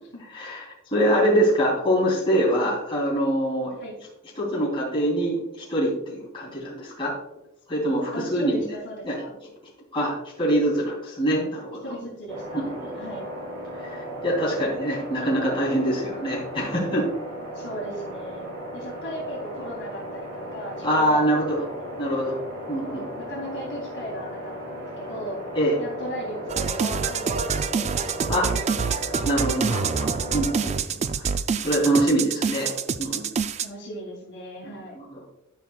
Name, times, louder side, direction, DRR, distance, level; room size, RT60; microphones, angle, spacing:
voice 1, 0.3-3.7 4.4-7.1 7.7-8.7 9.0-9.2 9.9-11.9 12.5-12.9 13.8-17.1 20.8-21.6 22.0-22.4 22.7-23.0 25.5-25.8 28.3-28.5 29.2-30.1 30.3-31.3 31.6-32.7 33.0-33.2 34.6-35.0, right 1 dB, 25° left, -5 dB, 3.1 m, -24 dB
voice 2, 8.1-9.3 11.8-12.6 12.9-13.2 17.5-21.9 22.8-25.4 25.8-27.5 28.0-28.9 30.1-30.4 31.8-32.1 33.6-35.0, equal, 60° left, -3 dB, 3.1 m, -37 dB
sound 1, 12.3-30.7, equal, 50° right, 3.0 m, -36 dB
sound 2, 26.5-33.7, right 6 dB, 30° right, 0.3 m, -26 dB
12.5 x 5.6 x 2.3 m, 0.89 s
head